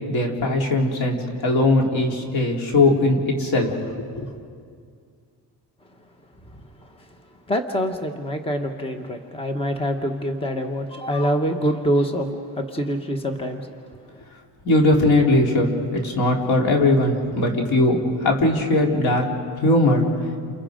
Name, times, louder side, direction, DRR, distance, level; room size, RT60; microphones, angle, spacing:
voice 1, 0.1-1.2 1.4-3.7 14.6-19.3 19.6-20.0, left 2 dB, 75° left, 1 dB, 3.6 m, -19 dB
voice 2, 7.5-12.3 12.6-13.7, equal, 15° left, 5 dB, 1.3 m, -25 dB
29.5 x 28.5 x 5.2 m, 2.2 s
cardioid pair, 145°, 37 cm